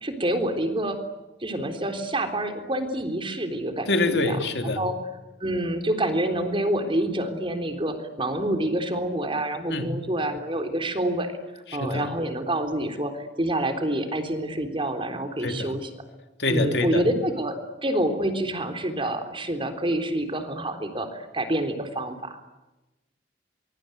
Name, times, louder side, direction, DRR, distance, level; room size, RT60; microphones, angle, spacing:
voice 1, 0.0-1.0 1.4-4.4 4.8-4.9 5.4-15.8 16.5-22.4, right 1 dB, 30° right, 7 dB, 3.7 m, -27 dB
voice 2, 3.9-4.8 9.7-9.9 11.8-12.1 15.4-15.7 16.4-17.0, left 2 dB, 70° left, 6 dB, 3.2 m, -25 dB
24.5 x 24.0 x 9.3 m, 1.0 s
head